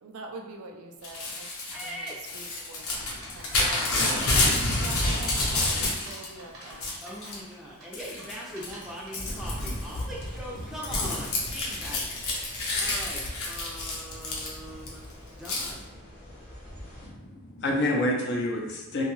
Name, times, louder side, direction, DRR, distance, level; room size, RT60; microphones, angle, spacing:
voice 1, 0.0-1.5 1.8-7.0, right 3 dB, 85° right, 2 dB, 0.4 m, -44 dB
Crumpling crinkling / Tearing, 1.0-6.3 6.6-7.4 7.9-8.3 8.6-14.9 15.5-15.7, left 2 dB, 85° left, 0.7 m, -29 dB
voice 2, 1.7-2.2 3.5-4.0 7.0-12.1 12.4-15.0 15.3-15.9, equal, ahead, -5 dB, 0.5 m, -41 dB
sound 1, 3.0-9.6, right 1 dB, 60° right, 0.8 m, -47 dB
sound 2, 9.2-17.1, equal, 35° left, 0.9 m, -44 dB
voice 3, 17.0-19.0, left 1 dB, 50° left, -1 dB, 0.5 m, -28 dB
2.7 x 2.3 x 3.0 m, 1.1 s
head